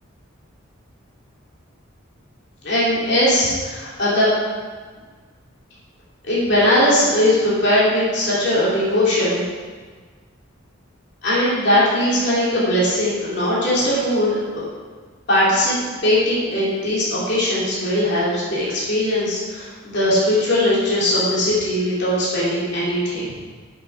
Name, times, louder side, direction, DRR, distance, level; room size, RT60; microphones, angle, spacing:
voice 1, 2.6-4.3 6.3-9.4 11.2-14.4 15.3-15.8 16.0-23.3, left 1 dB, 55° left, -8 dB, 3.0 m, -19 dB
10.5 x 5.8 x 4.6 m, 1.5 s
head